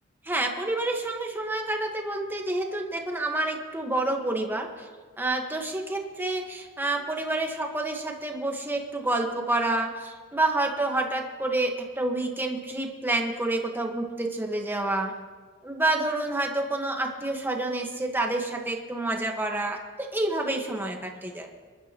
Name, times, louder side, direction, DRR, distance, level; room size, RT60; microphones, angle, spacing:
voice 1, 0.3-4.7 5.2-15.1 15.6-19.8 20.1-21.5, right 2 dB, 10° right, 2 dB, 1.4 m, -28 dB
26.5 x 12.0 x 3.0 m, 1.5 s
head